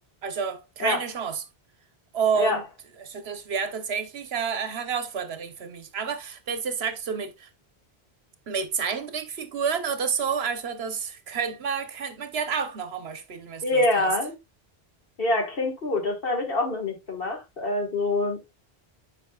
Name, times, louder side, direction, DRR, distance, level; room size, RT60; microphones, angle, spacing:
voice 1, 0.2-1.4 2.1-2.6 3.0-7.5 8.5-14.1, right 6 dB, 75° right, 1.2 m, -29 dB
voice 2, 13.6-14.3 15.2-18.4, left 2 dB, 60° left, 1.9 m, -25 dB
9.6 x 5.0 x 2.3 m
omnidirectional pair, 1.1 m